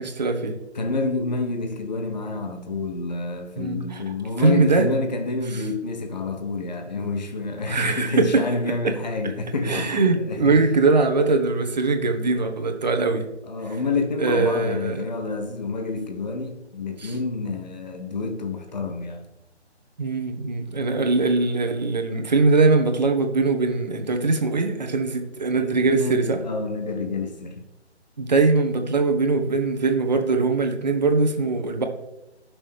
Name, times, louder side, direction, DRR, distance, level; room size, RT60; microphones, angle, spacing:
voice 1, 0.0-0.6 3.6-4.0 4.4-4.9 5.5-5.6 7.7-8.4 8.8-8.9 9.6-13.3 14.2-15.0 17.0-17.1 20.0-26.4 28.2-31.8, right 3 dB, 40° right, 1.3 m, -21 dB
voice 2, 0.7-10.6 13.4-19.2 25.5-27.6, left 3 dB, 40° left, 1.0 m, -28 dB
18.0 x 6.2 x 3.5 m
figure-of-eight pair, 150°, 34 cm